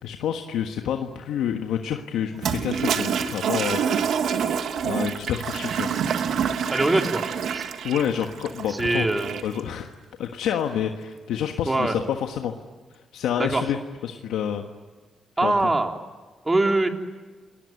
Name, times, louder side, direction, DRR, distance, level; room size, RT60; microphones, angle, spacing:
voice 1, 0.0-4.2 4.8-5.9 7.8-9.2 9.4-9.9 10.2-12.5 13.1-14.6 15.4-15.7, left 9 dB, 85° left, 4 dB, 1.4 m, -28 dB
Toilet flush, 2.3-9.6, right 7 dB, 75° right, 1.9 m, -27 dB
voice 2, 6.7-7.2 7.5-7.7 8.7-9.4 11.7-12.0 13.4-13.7 15.4-15.9 16.5-16.9, right 2 dB, 25° right, 4 dB, 3.7 m, -22 dB
28.5 x 20.5 x 9.5 m, 1.4 s
supercardioid pair, 60°, 0 cm